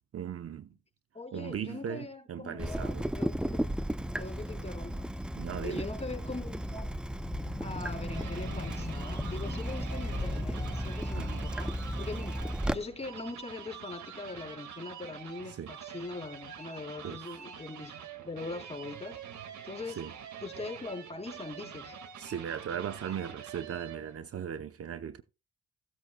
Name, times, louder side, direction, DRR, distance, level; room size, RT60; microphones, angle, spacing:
voice 1, 0.1-0.7 1.3-3.1 5.4-5.9 11.1-11.6 15.5-15.7 17.0-17.4 19.9-20.1 22.2-25.2, right 8 dB, 50° right, 0.9 m, -38 dB
voice 2, 1.1-3.6 4.1-5.1 5.6-6.9 7.6-11.7 12.0-12.4 12.7-17.9 18.2-19.2 19.6-20.0 20.4-22.0, left 3 dB, 20° left, 4.0 m, -41 dB
Water tap faucet / Drip, 2.6-12.7, equal, 5° right, 0.5 m, -35 dB
sound 1, 7.2-13.1, left 4 dB, 35° left, 4.4 m, -42 dB
sound 2, 7.7-24.2, right 8 dB, 70° right, 2.0 m, -46 dB
17.5 x 8.2 x 2.3 m
cardioid pair, 90°, 30 cm